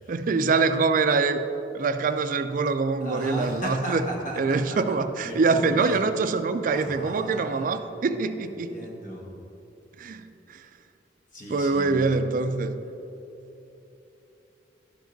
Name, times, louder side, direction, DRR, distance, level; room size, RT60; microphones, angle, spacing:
voice 1, 0.1-1.4 1.7-4.0 4.4-8.7 10.0-10.7 11.5-12.8, right 4 dB, 45° right, 10 dB, 0.4 m, -24 dB
voice 2, 3.0-5.0 5.2-5.9 6.7-7.8 8.4-9.2 11.3-12.2, equal, 45° left, -2 dB, 1.4 m, -36 dB
11.5 x 5.0 x 3.9 m, 3.0 s
head